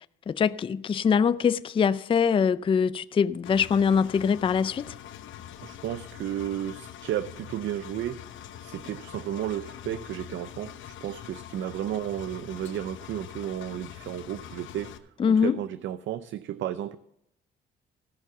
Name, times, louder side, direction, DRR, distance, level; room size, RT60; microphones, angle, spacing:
voice 1, 0.3-4.9 15.2-15.6, left 6 dB, 25° left, 0.4 m, -23 dB
Engine, 3.4-15.0, left 11 dB, 75° left, 0.9 m, -44 dB
voice 2, 5.6-17.0, right 11 dB, 70° right, 0.5 m, -33 dB
15.0 x 5.9 x 6.9 m
cardioid pair, 90°, 20 cm